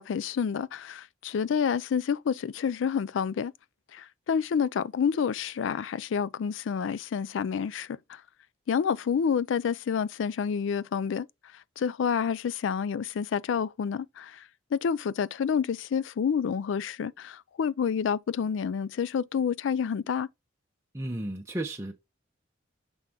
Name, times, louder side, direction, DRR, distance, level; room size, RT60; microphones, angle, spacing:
voice 1, 0.0-3.5 3.9-8.2 8.7-11.3 11.8-14.4 14.7-20.3, left 7 dB, 65° left, 0.3 m, -29 dB
voice 2, 20.9-22.0, right 1 dB, 15° right, 0.6 m, -33 dB
7.4 x 3.5 x 3.6 m
head